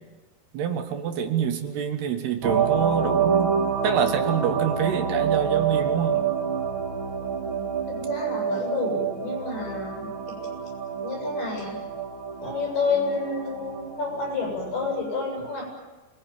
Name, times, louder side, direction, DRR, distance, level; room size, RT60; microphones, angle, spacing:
voice 1, 0.5-3.5 3.8-6.2, right 8 dB, 70° right, 6 dB, 3.5 m, -26 dB
sound 1, 2.4-15.0, right 7 dB, 35° right, 2.4 m, -27 dB
voice 2, 7.9-10.5 11.0-11.8 12.4-15.6, left 4 dB, 65° left, 0 dB, 9.6 m, -29 dB
27.5 x 20.5 x 9.2 m, 1.2 s
omnidirectional pair, 5.0 m